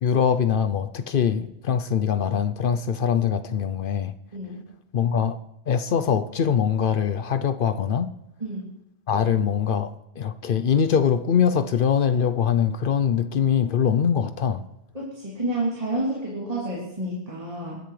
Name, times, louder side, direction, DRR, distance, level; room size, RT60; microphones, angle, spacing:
voice 1, 0.0-4.1 4.9-5.4 5.7-8.1 9.1-14.6, left 7 dB, 60° left, 0.7 m, -23 dB
voice 2, 4.3-4.6 8.4-8.6 14.9-17.8, right 1 dB, 35° right, 3.0 m, -29 dB
21.5 x 10.5 x 3.2 m
omnidirectional pair, 1.1 m